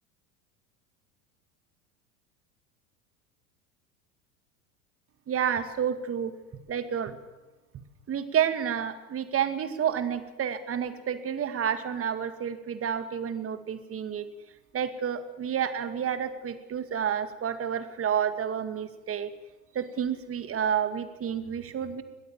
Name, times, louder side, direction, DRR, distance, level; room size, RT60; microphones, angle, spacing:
voice 1, 5.3-6.3 6.7-7.2 8.1-14.3 14.7-19.3 19.7-22.0, right 8 dB, 30° right, 10 dB, 2.2 m, -30 dB
21.5 x 18.5 x 7.4 m, 1.1 s
figure-of-eight pair, 80°, 44 cm